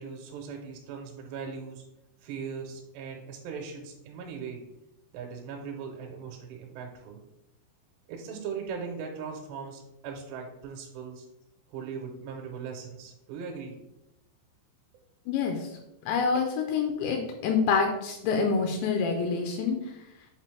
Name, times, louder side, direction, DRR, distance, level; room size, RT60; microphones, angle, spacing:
voice 1, 0.0-1.8 2.2-4.6 5.1-7.2 8.1-11.3 11.7-13.7 16.2-16.3, right 6 dB, 80° right, 1 dB, 2.6 m, -39 dB
voice 2, 15.3-15.8 16.1-19.9, left 5 dB, 85° left, 3 dB, 2.6 m, -27 dB
7.4 x 3.9 x 3.2 m, 0.89 s
omnidirectional pair, 5.4 m